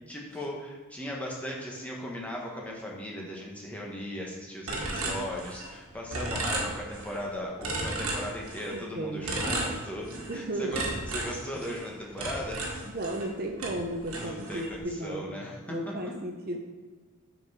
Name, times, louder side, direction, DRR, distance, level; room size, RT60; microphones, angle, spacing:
voice 1, 0.1-12.6 14.1-15.8, equal, 5° left, -3 dB, 1.2 m, -37 dB
sound 1, 4.7-5.8 6.1-7.2 7.6-8.8 9.2-10.4 10.7-13.3 13.6-14.8, right 2 dB, 90° right, 1.5 m, -34 dB
voice 2, 8.7-9.4 10.3-10.9 12.8-15.3 15.7-16.6, right 1 dB, 45° right, 3 dB, 0.7 m, -34 dB
7.0 x 5.4 x 4.8 m, 1.4 s
head